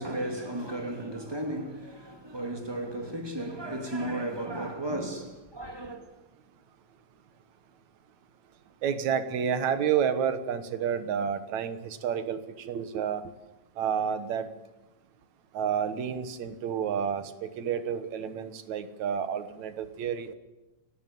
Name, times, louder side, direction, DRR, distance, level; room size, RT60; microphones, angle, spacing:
voice 1, 0.0-6.0, right 1 dB, 10° right, 2.3 m, -34 dB
voice 2, 8.8-13.2 13.8-14.5 15.5-20.3, right 8 dB, 75° right, 2.5 m, -30 dB
29.5 x 11.0 x 9.2 m
omnidirectional pair, 3.4 m